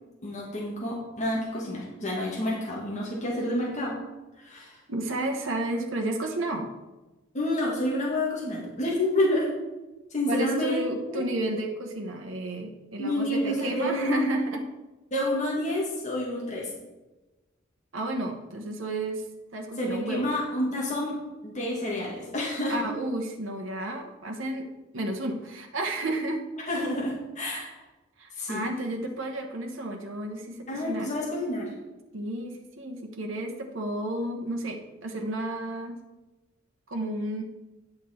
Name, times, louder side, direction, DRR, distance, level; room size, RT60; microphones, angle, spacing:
voice 1, 0.2-3.9 4.4-4.8 7.3-9.5 10.1-10.8 11.1-11.2 13.0-14.2 15.1-16.7 19.8-21.2 21.4-22.8 26.7-27.7 28.4-28.6 30.7-31.7, left 1 dB, 35° left, -4 dB, 1.8 m, -29 dB
voice 2, 4.9-6.7 10.3-14.7 17.9-19.2 19.5-20.3 22.7-24.7 24.9-26.4 28.2-31.1 32.1-36.0 36.9-37.4, right 1 dB, 70° right, 2 dB, 1.0 m, -32 dB
9.9 x 5.9 x 4.3 m, 1.1 s
head